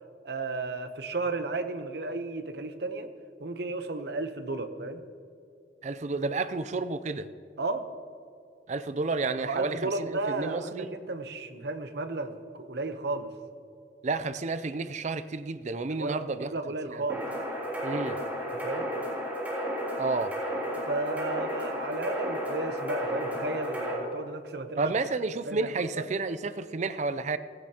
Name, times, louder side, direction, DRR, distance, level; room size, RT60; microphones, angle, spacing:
voice 1, 0.2-3.1 3.4-5.0 7.6-7.9 9.4-13.3 16.0-17.3 18.6-18.9 20.9-24.8 25.5-26.0, right 2 dB, 60° right, 8 dB, 0.9 m, -33 dB
voice 2, 5.8-7.3 8.7-10.9 14.0-16.5 16.9-17.0 17.8-18.2 20.0-20.3 24.8-27.4, right 3 dB, 40° right, 13 dB, 0.5 m, -31 dB
sound 1, 17.1-24.0, equal, 10° right, 3.5 m, -33 dB
16.0 x 15.5 x 2.9 m, 2.5 s
head